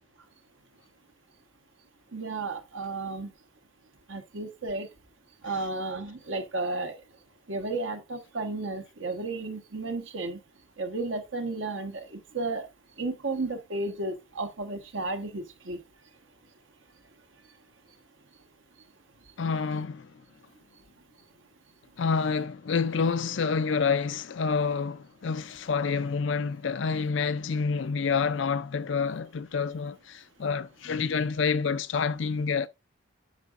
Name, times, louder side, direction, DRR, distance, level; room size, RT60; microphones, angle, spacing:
voice 1, 2.1-3.3 4.1-4.9 5.4-7.0 7.5-10.4 10.8-12.7 13.0-15.8, right 2 dB, 70° right, 1.3 m, -33 dB
voice 2, 19.4-20.1 22.0-32.7, left 5 dB, 65° left, 0.5 m, -28 dB
9.6 x 6.0 x 2.5 m
head